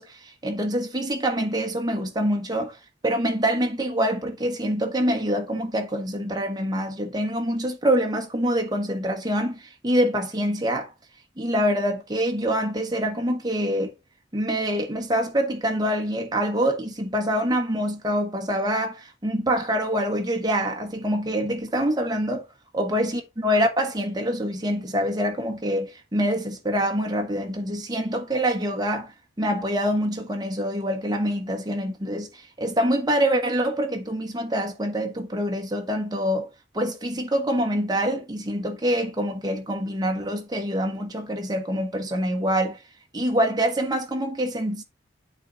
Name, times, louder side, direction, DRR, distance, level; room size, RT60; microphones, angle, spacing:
voice 1, 0.0-2.8 3.0-10.9 11.4-13.9 14.3-22.4 22.7-29.1 29.4-36.5 36.7-42.8 43.1-44.8, equal, 20° right, 1.3 m, -25 dB
8.8 x 4.0 x 4.0 m
head